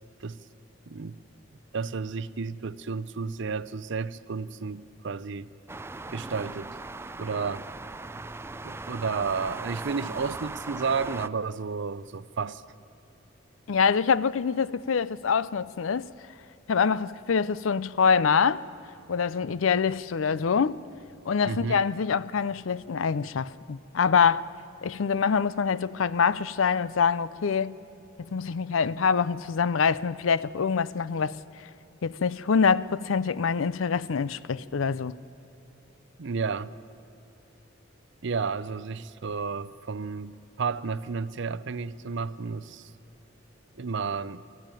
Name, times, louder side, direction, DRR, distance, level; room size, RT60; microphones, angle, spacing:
voice 1, 0.9-1.2 1.7-5.5 6.1-6.8 7.2-7.6 8.6-12.6 21.4-21.8 36.2-36.7 38.2-42.9 43.8-44.4, right 5 dB, 65° right, 0.6 m, -32 dB
sound 1, 5.7-11.3, right 3 dB, 15° right, 0.4 m, -39 dB
voice 2, 13.7-16.1 16.7-18.6 19.1-20.8 21.3-24.4 24.8-27.8 28.3-31.3 32.0-35.1, left 6 dB, 90° left, 0.5 m, -25 dB
24.5 x 14.0 x 9.1 m
head